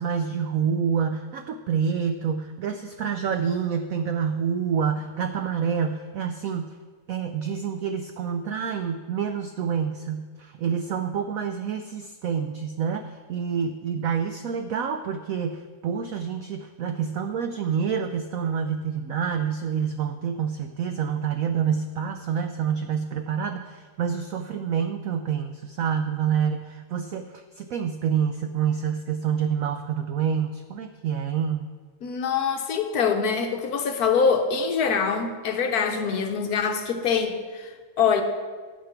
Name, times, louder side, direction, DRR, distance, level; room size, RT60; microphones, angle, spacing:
voice 1, 0.0-6.8 7.1-31.7, right 7 dB, 80° right, 7 dB, 0.7 m, -27 dB
voice 2, 32.0-37.6 38.0-38.2, left 6 dB, 65° left, 5 dB, 1.1 m, -24 dB
10.0 x 7.4 x 5.8 m, 1.5 s
omnidirectional pair, 2.0 m